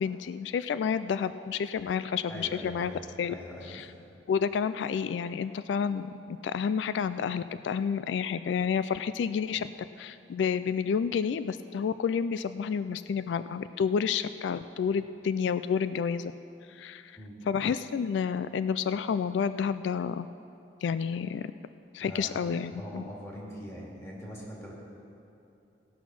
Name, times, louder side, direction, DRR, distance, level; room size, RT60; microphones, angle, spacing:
voice 1, 0.0-2.9 3.2-3.3 3.7-3.9 4.3-9.7 10.0-16.3 16.7-17.1 17.5-20.3 20.8-21.5 21.9-23.0, left 6 dB, 90° left, 13 dB, 0.3 m, -30 dB
voice 2, 2.3-3.9 17.2-17.4 21.9-24.7, equal, 15° left, -4 dB, 2.3 m, -43 dB
17.5 x 6.2 x 5.9 m, 2.8 s
head